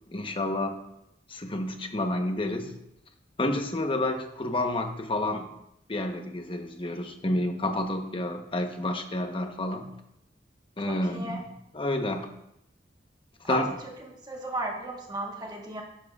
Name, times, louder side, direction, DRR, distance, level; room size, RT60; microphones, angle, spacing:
voice 1, 0.1-0.8 1.3-2.7 3.4-5.5 5.9-9.9 10.8-11.4 11.7-12.3 13.5-13.7, left 1 dB, 30° left, 5 dB, 1.0 m, -29 dB
voice 2, 10.9-11.4 13.4-13.6 14.0-15.8, right 2 dB, 25° right, 0 dB, 1.3 m, -35 dB
11.5 x 10.5 x 2.4 m, 0.81 s
head